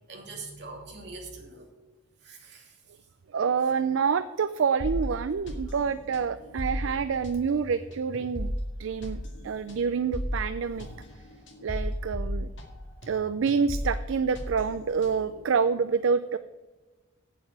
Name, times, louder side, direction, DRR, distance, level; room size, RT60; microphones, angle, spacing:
voice 1, 0.1-1.7 2.2-2.7, right 3 dB, 55° right, 0 dB, 2.9 m, -43 dB
voice 2, 3.3-8.5 8.8-10.9 11.6-12.5 13.1-16.4, right 6 dB, 75° right, 13 dB, 0.4 m, -27 dB
sound 1, 4.8-13.2 13.5-15.4, equal, 65° left, 2.0 m, -35 dB
8.7 x 7.5 x 8.6 m, 1.2 s
head